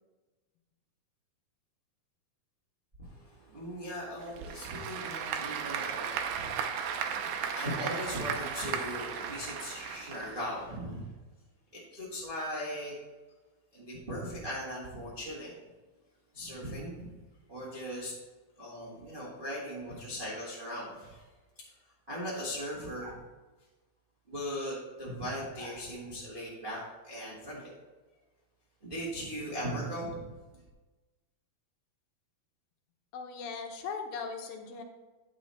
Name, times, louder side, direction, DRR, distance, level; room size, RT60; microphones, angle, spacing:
voice 1, 3.0-11.1 11.7-12.9 13.7-15.5 16.3-17.1 17.5-18.1 18.6-21.3 22.1-23.2 24.3-27.7 28.8-30.2, equal, 35° right, -7 dB, 0.8 m, -39 dB
Applause / Crowd, 4.2-10.8, right 7 dB, 80° right, 1.7 m, -36 dB
voice 2, 33.1-34.8, left 5 dB, 80° left, 4 dB, 2.5 m, -39 dB
9.5 x 5.4 x 4.2 m, 1.2 s
omnidirectional pair, 4.2 m